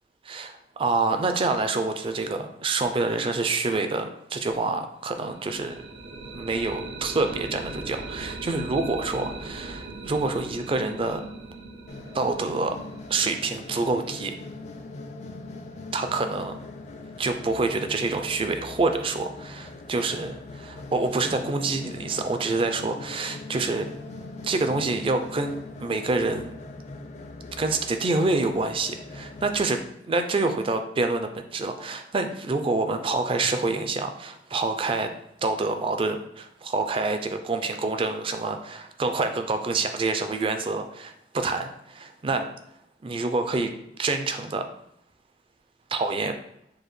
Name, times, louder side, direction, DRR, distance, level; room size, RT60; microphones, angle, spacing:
voice 1, 0.3-5.8 6.3-11.2 12.1-12.8 13.1-14.3 15.9-16.6 17.2-23.9 24.4-26.5 27.6-35.1 35.4-42.5 43.0-43.7 44.0-44.6 45.9-46.3, right 3 dB, 30° right, 7 dB, 0.4 m, -27 dB
sound 1, 5.1-14.9, right 2 dB, 75° right, 0.6 m, -40 dB
sound 2, 11.9-29.7, left 2 dB, 40° left, 0.4 m, -41 dB
7.0 x 2.4 x 3.1 m, 0.75 s
head